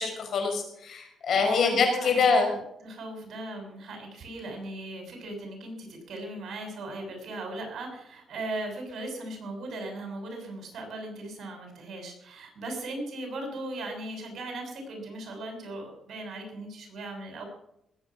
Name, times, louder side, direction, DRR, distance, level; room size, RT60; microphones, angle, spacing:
voice 1, 0.0-2.5, left 4 dB, 65° left, 3 dB, 5.5 m, -24 dB
voice 2, 1.3-2.4 2.8-17.5, right 2 dB, 60° right, 3 dB, 6.6 m, -38 dB
20.0 x 9.2 x 6.0 m, 0.79 s
cardioid pair, 105°, 0 cm